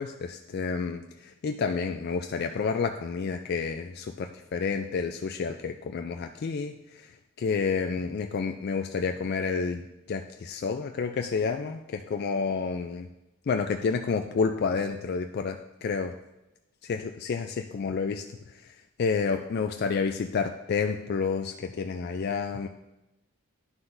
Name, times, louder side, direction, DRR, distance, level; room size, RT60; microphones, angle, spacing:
voice 1, 0.0-13.1 13.5-16.1 16.8-22.7, left 5 dB, 50° left, 5 dB, 0.3 m, -30 dB
11.0 x 5.8 x 2.6 m, 0.95 s
head